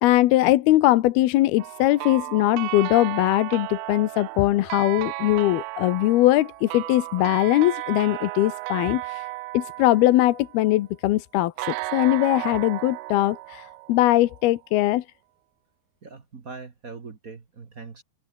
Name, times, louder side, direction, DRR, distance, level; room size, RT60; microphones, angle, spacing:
voice 1, 0.0-9.3 9.5-15.0, left 16 dB, 85° left, 2.9 m, -21 dB
sound 1, 1.6-10.8 11.6-14.5, right 20 dB, 85° right, 2.6 m, -34 dB
voice 2, 16.0-18.0, right 4 dB, 45° right, 1.1 m, -41 dB
omnidirectional pair, 4.4 m